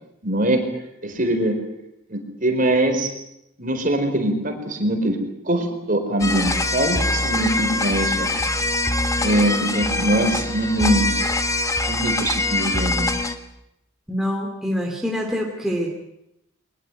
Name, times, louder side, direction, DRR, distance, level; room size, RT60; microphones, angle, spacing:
voice 1, 0.2-0.6 1.0-1.6 2.1-3.1 3.6-5.2 5.4-8.3 9.2-11.1 11.9-13.1, right 1 dB, 40° right, 5 dB, 4.4 m, -22 dB
sound 1, 6.2-13.4, left 2 dB, 15° left, 1.4 m, -23 dB
voice 2, 14.1-15.9, equal, ahead, 0 dB, 2.7 m, -25 dB
23.0 x 20.0 x 9.1 m, 0.82 s
head